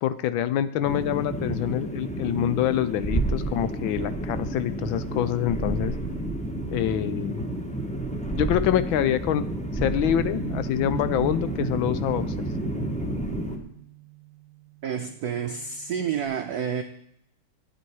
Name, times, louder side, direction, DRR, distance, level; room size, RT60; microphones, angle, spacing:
voice 1, 0.0-5.9 6.7-7.5 8.3-9.4 9.7-12.3, left 11 dB, 75° left, 1.3 m, -26 dB
sound 1, 0.8-13.6, right 1 dB, 5° left, 0.8 m, -30 dB
Bass guitar, 10.0-16.3, right 14 dB, 45° left, 4.0 m, -42 dB
voice 2, 14.8-16.8, right 7 dB, 80° right, 0.8 m, -29 dB
11.5 x 9.1 x 4.6 m
omnidirectional pair, 2.4 m